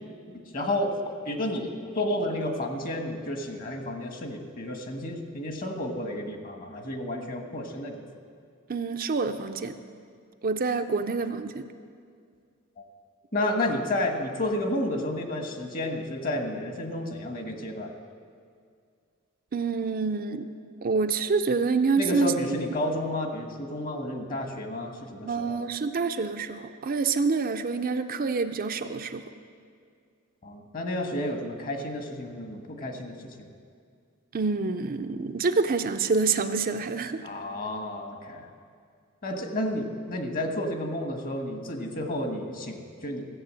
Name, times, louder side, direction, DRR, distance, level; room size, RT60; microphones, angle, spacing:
voice 1, 0.3-1.0 1.2-8.0 13.3-17.9 22.0-25.6 30.4-33.5 37.2-38.5 39.2-43.3, left 1 dB, 45° left, 4 dB, 1.4 m, -31 dB
voice 2, 8.7-9.8 10.4-11.7 19.5-20.5 20.8-22.6 25.3-29.2 34.3-37.2, right 4 dB, 45° right, 7 dB, 0.5 m, -27 dB
15.0 x 7.8 x 7.5 m, 2.2 s
head